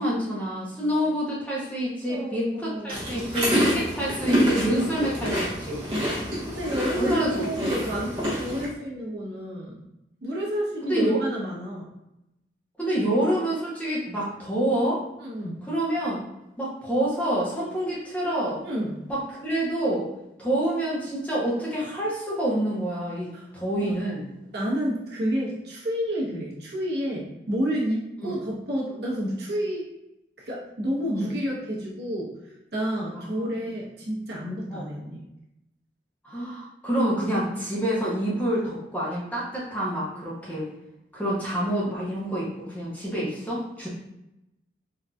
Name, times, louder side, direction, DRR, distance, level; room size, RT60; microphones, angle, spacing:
voice 1, 0.0-5.9 7.0-7.5 10.8-11.2 12.8-15.0 15.7-16.2 16.6-18.6 19.1-20.1 20.4-24.3 28.2-28.4 31.1-31.3 33.3-33.4 34.7-34.9 36.2-40.7 41.1-43.9, right 1 dB, 10° left, -6 dB, 0.7 m, -27 dB
voice 2, 2.1-3.4 6.4-9.8 10.2-11.9 15.2-15.6 18.6-19.0 23.3-23.5 23.8-23.9 24.5-29.9 30.4-35.2, equal, 60° right, -4 dB, 0.8 m, -30 dB
sound 1, 2.9-8.7, equal, 25° right, 0.9 m, -27 dB
3.7 x 2.6 x 2.2 m, 0.89 s
head